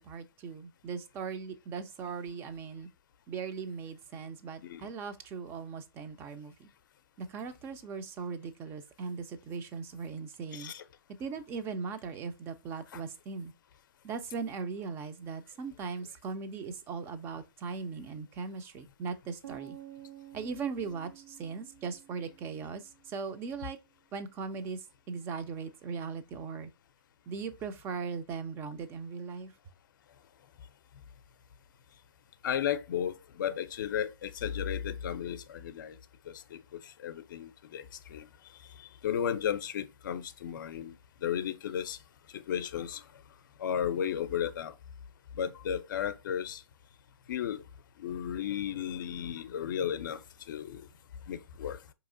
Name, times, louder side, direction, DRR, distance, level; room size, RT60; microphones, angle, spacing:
voice 1, 0.0-2.9 3.3-6.7 7.2-10.7 11.2-13.5 14.0-19.8 20.3-23.8 24.1-26.7 27.3-29.5, right 5 dB, 20° right, 0.4 m, -39 dB
voice 2, 10.5-10.8 12.9-13.0 32.4-36.0 36.3-38.3 39.0-40.9 41.2-42.0 42.3-43.0 43.6-44.7 45.4-46.6 47.3-47.6 48.0-50.2 50.5-50.9 51.3-51.8, left 9 dB, 55° left, 0.5 m, -34 dB
sound 1, 19.4-23.3, right 12 dB, 75° right, 0.6 m, -51 dB
4.6 x 2.9 x 2.5 m
hypercardioid pair, 135°, 13 cm